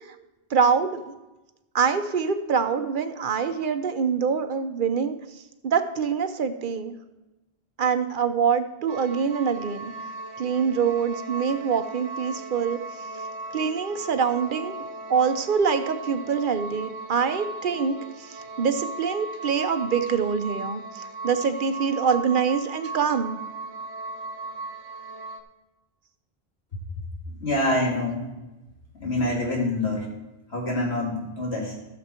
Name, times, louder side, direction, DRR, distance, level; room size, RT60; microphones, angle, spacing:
voice 1, 0.5-1.1 1.7-5.2 5.6-7.0 7.8-9.9 10.4-12.8 13.5-23.4, right 6 dB, 55° right, 9 dB, 0.9 m, -25 dB
sound 1, 8.9-25.4, right 2 dB, 90° right, 1.2 m, -37 dB
voice 2, 27.4-28.2 28.9-30.1 30.5-31.7, left 1 dB, 90° left, -2 dB, 2.7 m, -26 dB
12.5 x 7.1 x 4.4 m, 1.0 s
omnidirectional pair, 1.1 m